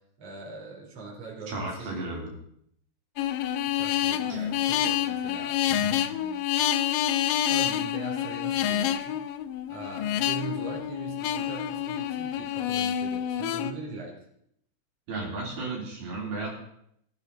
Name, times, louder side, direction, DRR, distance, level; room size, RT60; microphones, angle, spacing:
voice 1, 0.2-2.0 3.7-6.3 7.5-9.2 9.7-14.2, right 4 dB, 40° right, -1 dB, 4.2 m, -41 dB
voice 2, 1.5-2.3 15.1-16.5, right 3 dB, 65° right, -3 dB, 5.1 m, -33 dB
sound 1, 3.2-13.7, left 11 dB, 80° left, 2.0 m, -28 dB
17.0 x 15.5 x 4.1 m, 0.72 s
omnidirectional pair, 4.8 m